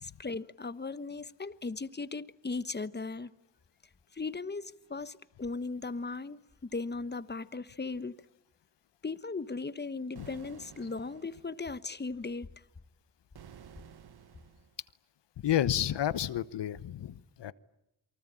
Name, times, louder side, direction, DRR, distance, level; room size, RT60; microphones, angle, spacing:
voice 1, 0.0-3.3 4.1-6.4 6.7-8.2 9.0-12.5, left 3 dB, 25° left, 1.2 m, -37 dB
sound 1, 10.2-11.6 13.3-14.8, right 8 dB, 65° right, 1.3 m, -53 dB
voice 2, 15.4-17.5, left 11 dB, 75° left, 1.1 m, -30 dB
28.5 x 24.0 x 8.7 m
cardioid pair, 70°, 42 cm